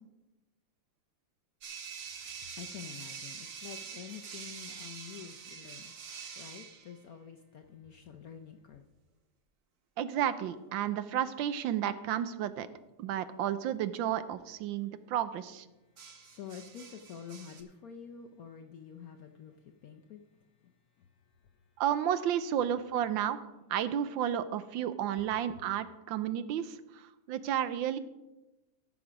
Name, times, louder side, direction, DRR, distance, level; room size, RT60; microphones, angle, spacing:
sound 1, 1.6-6.9 10.4-10.7 16.0-17.6, right 6 dB, 55° right, 1.4 m, -45 dB
voice 1, 2.6-5.9 6.4-8.8 16.2-20.2, left 8 dB, 70° left, 0.9 m, -48 dB
voice 2, 10.0-12.7 13.0-15.7 21.8-23.4 23.7-26.8 27.3-28.0, right 10 dB, 75° right, 1.3 m, -32 dB
14.0 x 6.1 x 5.1 m
omnidirectional pair, 2.2 m